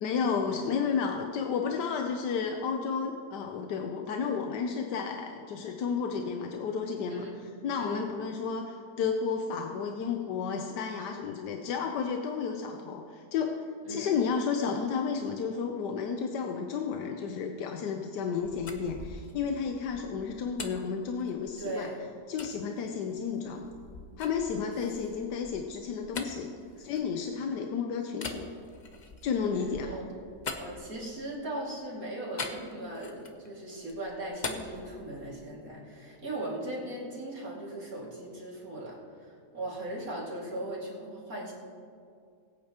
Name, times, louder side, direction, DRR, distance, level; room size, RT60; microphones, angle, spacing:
voice 1, 0.0-13.5 13.9-21.9 22.3-23.7 24.2-26.5 26.8-28.5 29.2-30.0, left 6 dB, 90° left, 3 dB, 1.3 m, -32 dB
voice 2, 7.1-7.4 7.8-8.0 13.9-14.1 21.6-22.0 26.1-26.4 29.8-30.1 30.6-41.5, right 1 dB, 55° right, -5 dB, 2.8 m, -38 dB
sound 1, 18.4-21.7 22.4-22.6 23.1-27.5 28.1-31.4 32.4-33.5 33.8-35.6, left 3 dB, 40° left, 0.7 m, -43 dB
21.0 x 8.6 x 3.0 m, 2.3 s
omnidirectional pair, 1.8 m